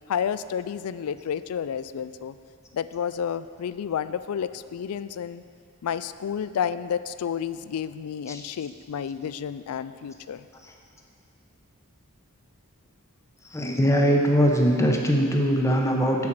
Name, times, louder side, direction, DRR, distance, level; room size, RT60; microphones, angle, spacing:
voice 1, 0.1-2.3 2.7-5.4 5.8-10.4, left 8 dB, 75° left, 14 dB, 0.4 m, -30 dB
voice 2, 13.5-16.3, equal, 15° left, 0 dB, 0.9 m, -21 dB
11.0 x 4.8 x 7.5 m, 2.3 s
head